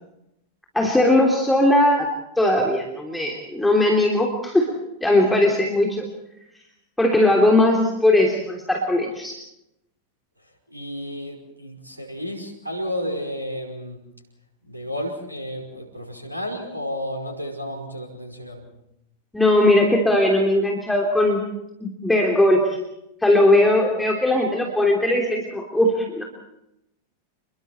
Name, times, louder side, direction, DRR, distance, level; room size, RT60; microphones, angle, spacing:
voice 1, 0.7-2.1 2.4-4.7 5.0-6.0 7.0-9.3 19.3-21.4 21.8-22.7 23.2-26.2, left 1 dB, 5° left, 0 dB, 3.3 m, -19 dB
voice 2, 10.7-14.0 14.7-18.7, equal, 85° right, 1 dB, 5.2 m, -32 dB
29.5 x 22.0 x 4.5 m, 0.84 s
figure-of-eight pair, 90°, 0 cm